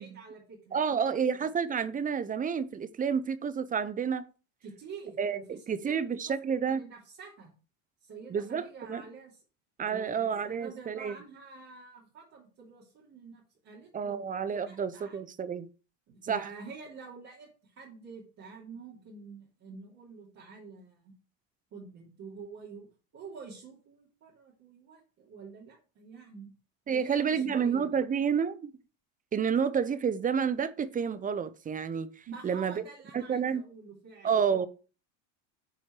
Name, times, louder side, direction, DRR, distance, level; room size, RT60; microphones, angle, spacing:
voice 1, 0.0-1.5 4.6-6.2 6.5-7.5 8.0-9.4 9.8-14.3 14.6-15.2 16.1-21.1 21.7-22.9 23.1-26.6 26.8-28.0 32.3-34.4, right 5 dB, 45° right, 3.1 m, -48 dB
voice 2, 0.7-4.2 5.2-5.4 5.7-6.8 8.3-9.0 9.8-11.1 13.9-15.7 16.3-16.5 26.9-28.7 29.3-32.1 32.4-32.8 33.1-33.6 34.2-34.7, right 7 dB, 20° right, 0.7 m, -29 dB
9.0 x 4.5 x 4.6 m
supercardioid pair, 105°, 39 cm